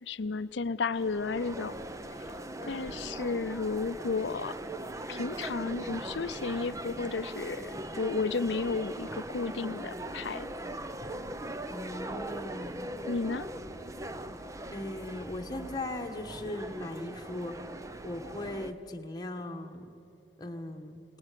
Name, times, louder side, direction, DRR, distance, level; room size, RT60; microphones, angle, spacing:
voice 1, 0.0-1.7 2.6-4.5 5.1-10.5 13.1-13.5, left 4 dB, 75° left, 15 dB, 0.6 m, -33 dB
sound 1, 0.9-18.7, right 1 dB, 20° right, 0.7 m, -40 dB
voice 2, 11.7-12.8 14.7-17.5 18.0-19.9 20.4-21.0, left 1 dB, 20° left, 3 dB, 1.5 m, -38 dB
27.5 x 19.5 x 6.9 m, 2.8 s
head